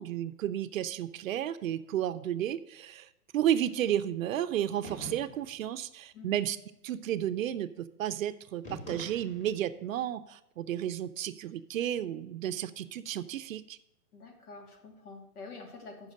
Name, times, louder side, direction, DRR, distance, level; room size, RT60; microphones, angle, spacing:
voice 1, 0.0-3.1 3.3-6.6 6.8-13.8, right 11 dB, 55° right, 12 dB, 0.6 m, -32 dB
sound 1, 4.8-5.6 8.6-9.7, equal, 15° left, 3.2 m, -44 dB
voice 2, 14.1-16.1, left 3 dB, 65° left, 3 dB, 2.8 m, -47 dB
8.4 x 6.1 x 6.4 m, 0.86 s
hypercardioid pair, 145°, 48 cm